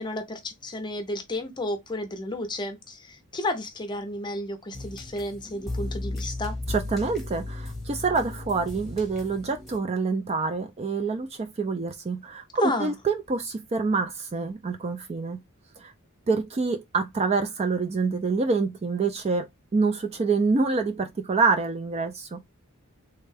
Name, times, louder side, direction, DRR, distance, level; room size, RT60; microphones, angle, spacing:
voice 1, 0.0-6.6 12.6-12.9, left 1 dB, 20° left, 0.6 m, -32 dB
sound 1, 4.7-9.8, left 2 dB, ahead, 1.0 m, -35 dB
voice 2, 6.7-15.4 15.8-15.9 16.3-19.5 19.7-22.4, right 4 dB, 30° right, 0.3 m, -26 dB
3.4 x 2.2 x 3.2 m
head